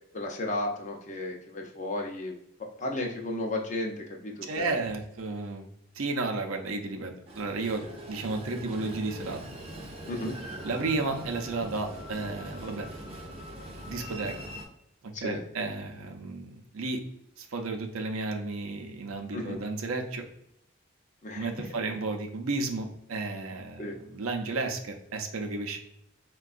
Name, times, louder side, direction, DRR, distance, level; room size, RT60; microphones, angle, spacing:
voice 1, 0.1-2.3 2.6-4.8 10.1-10.3 15.1-15.4 19.3-19.6 21.2-21.6 23.8-24.0, left 1 dB, 35° left, 2 dB, 0.5 m, -34 dB
voice 2, 4.4-5.6 5.9-9.4 10.6-12.9 13.8-14.4 15.0-17.0 17.4-20.2 21.3-25.8, right 3 dB, 85° right, 3 dB, 0.5 m, -33 dB
Train, 7.3-14.7, equal, 30° right, 0.5 m, -42 dB
4.5 x 2.2 x 2.4 m, 0.79 s
head